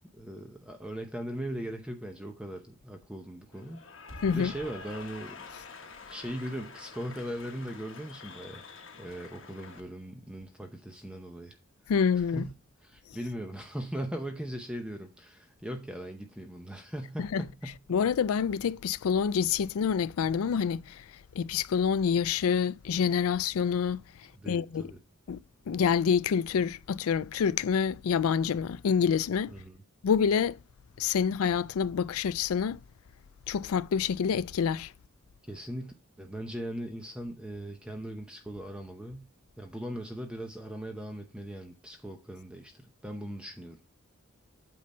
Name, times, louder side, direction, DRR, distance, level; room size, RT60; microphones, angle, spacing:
voice 1, 0.1-3.8 4.3-5.5 5.9-8.6 9.0-11.6 12.3-12.5 12.8-17.8 24.3-25.0 29.5-29.8 35.5-39.3 39.6-43.8, equal, 5° right, 0.7 m, -39 dB
Cheering / Applause, 3.5-9.8, left 4 dB, 65° left, 1.3 m, -47 dB
voice 2, 11.9-12.5 17.2-17.4 17.9-21.0 21.3-24.0 24.5-24.9 25.3-25.4 25.7-29.5 30.0-30.6 31.0-32.8 33.5-34.9, left 7 dB, 85° left, 0.4 m, -27 dB
8.5 x 3.9 x 5.4 m
head